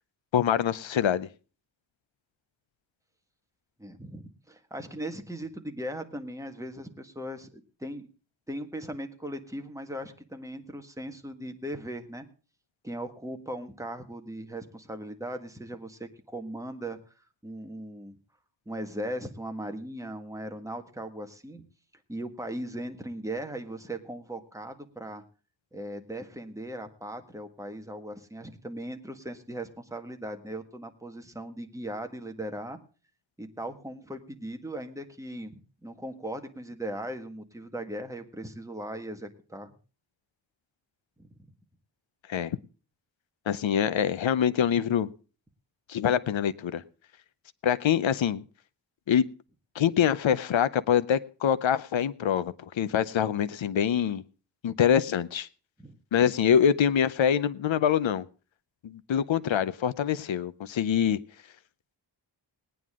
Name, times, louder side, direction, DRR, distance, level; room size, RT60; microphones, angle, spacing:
voice 1, 0.3-1.3 42.3-42.6 43.5-45.1 45.9-46.8 47.6-48.4 49.1-49.2 49.8-54.2 54.6-55.5 56.1-58.3 58.8-61.2, left 8 dB, 80° left, 0.7 m, -25 dB
voice 2, 3.8-8.1 8.5-12.3 12.8-17.0 17.4-18.1 18.6-21.6 22.1-25.2 25.7-32.8 33.4-39.7 41.2-41.4 55.8-56.0 59.5-59.6, right 1 dB, 5° right, 1.6 m, -38 dB
19.5 x 9.3 x 3.6 m
wide cardioid pair, 90°, 46 cm